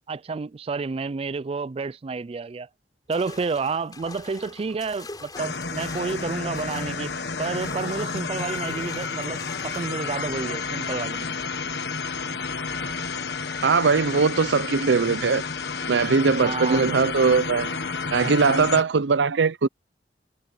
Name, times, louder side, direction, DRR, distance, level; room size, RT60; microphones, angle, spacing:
voice 1, 0.1-2.7 3.1-7.1 7.4-11.4 16.4-16.8 18.2-18.4, right 4 dB, 35° right, 0.4 m, -30 dB
sound 1, 3.1-10.0, left 3 dB, 25° left, 4.0 m, -44 dB
sound 2, 5.4-18.8, left 4 dB, 70° left, 1.5 m, -31 dB
voice 2, 13.6-15.4 15.9-17.7 18.1-19.7, right 5 dB, 85° right, 0.6 m, -20 dB
head